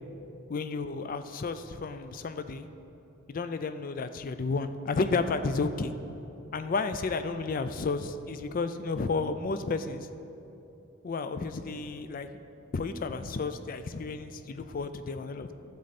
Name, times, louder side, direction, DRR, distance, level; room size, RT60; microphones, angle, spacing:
voice 1, 0.5-2.7 3.3-5.9 6.5-10.1 11.0-12.3 12.7-15.5, left 4 dB, 40° left, 10 dB, 0.4 m, -32 dB
12.0 x 7.6 x 4.2 m, 2.9 s
head